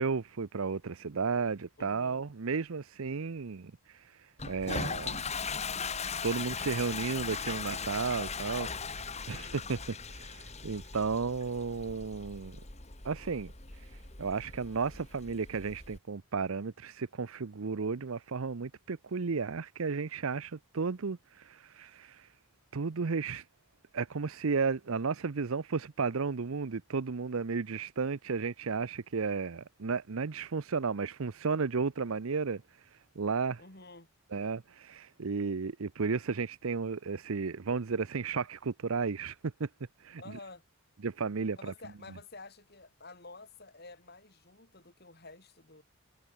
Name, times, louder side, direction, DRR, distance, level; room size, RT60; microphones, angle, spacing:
voice 1, 0.0-5.2 6.2-12.6 13.0-22.3 22.7-23.5 23.9-33.6 34.3-39.7 40.0-40.4 41.0-41.7, right 5 dB, 70° right, 0.6 m, -34 dB
voice 2, 1.8-2.2 9.3-9.6 33.6-34.1 40.2-40.6 41.5-45.8, left 3 dB, 45° left, 5.1 m, -50 dB
Toilet flush, 4.4-16.0, left 5 dB, 30° left, 2.7 m, -39 dB
head